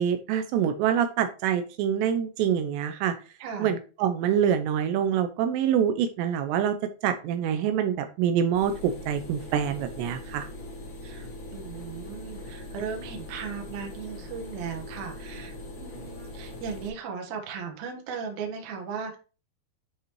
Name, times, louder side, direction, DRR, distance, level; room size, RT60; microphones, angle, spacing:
voice 1, 0.0-3.1 3.6-6.8 7.0-10.5, right 9 dB, 85° right, 8 dB, 2.8 m, -25 dB
voice 2, 3.4-3.7 7.2-7.4 11.0-19.2, right 6 dB, 60° right, 2 dB, 2.1 m, -37 dB
sound 1, 8.5-16.9, left 1 dB, 55° left, 1.3 m, -41 dB
10.5 x 4.1 x 3.1 m, 0.35 s
omnidirectional pair, 5.1 m